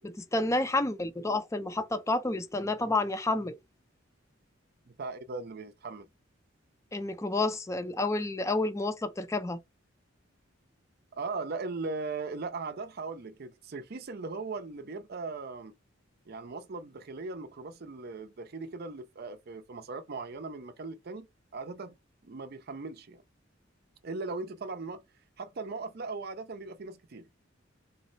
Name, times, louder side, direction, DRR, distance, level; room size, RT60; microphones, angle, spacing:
voice 1, 0.0-3.6 6.9-9.6, left 2 dB, 15° left, 0.4 m, -30 dB
voice 2, 4.9-6.1 11.1-15.7 16.3-21.3 21.5-22.0 22.2-23.2 24.0-25.0 25.4-27.3, right 3 dB, 50° right, 0.5 m, -38 dB
3.9 x 2.0 x 3.9 m
head